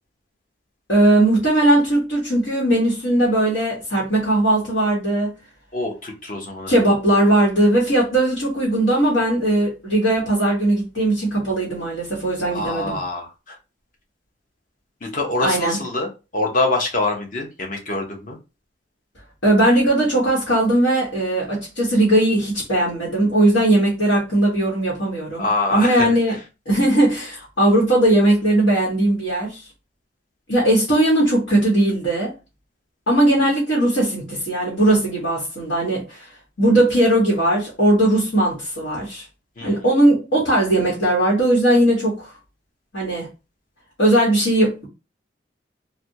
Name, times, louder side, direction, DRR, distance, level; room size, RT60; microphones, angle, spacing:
voice 1, 0.9-5.3 6.7-13.0 15.4-15.8 19.4-26.4 26.7-29.6 30.5-32.3 33.1-36.2 36.6-39.2 39.6-42.3 42.9-43.3 44.0-44.9, right 1 dB, 85° left, 1.3 m, -18 dB
voice 2, 5.7-6.8 12.5-13.5 15.0-18.4 25.4-26.1 39.6-39.7, left 2 dB, 45° left, 0.8 m, -25 dB
3.3 x 2.3 x 2.7 m
head